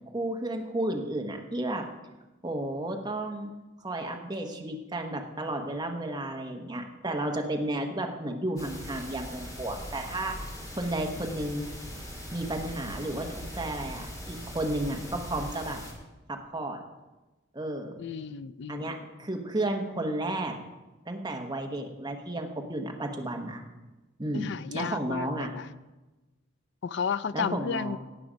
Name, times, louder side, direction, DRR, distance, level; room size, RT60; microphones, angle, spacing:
voice 1, 0.1-1.8 2.4-3.5 3.8-10.3 10.8-11.7 12.3-15.8 16.3-16.8 17.5-18.0 18.7-20.5 21.1-23.6 24.2-25.5 27.3-28.0, right 1 dB, 20° right, 2 dB, 1.1 m, -32 dB
sound 1, 8.6-15.9, equal, 15° left, 2.1 m, -40 dB
voice 2, 18.0-18.9 24.3-25.7 26.8-28.0, left 6 dB, 60° left, 15 dB, 0.4 m, -33 dB
17.0 x 6.0 x 5.1 m, 1.1 s
head